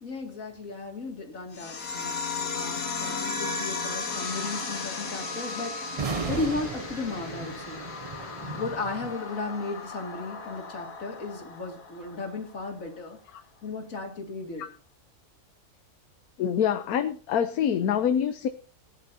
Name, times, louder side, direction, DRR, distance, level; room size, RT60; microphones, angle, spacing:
voice 1, 0.0-5.8 6.1-7.8 8.4-13.2 13.6-14.6, left 3 dB, 60° left, 2 dB, 2.8 m, -35 dB
sound 1, 1.5-12.6, left 5 dB, 90° left, 2.2 m, -36 dB
Wind instrument woodwind instrument, 2.8-7.1, right 4 dB, 35° right, 0.8 m, -42 dB
sound 2, 5.9-9.2, right 5 dB, 55° right, 0.3 m, -35 dB
voice 2, 16.4-18.5, left 8 dB, 75° left, 9 dB, 1.2 m, -25 dB
19.5 x 10.5 x 2.8 m, 0.38 s
omnidirectional pair, 1.6 m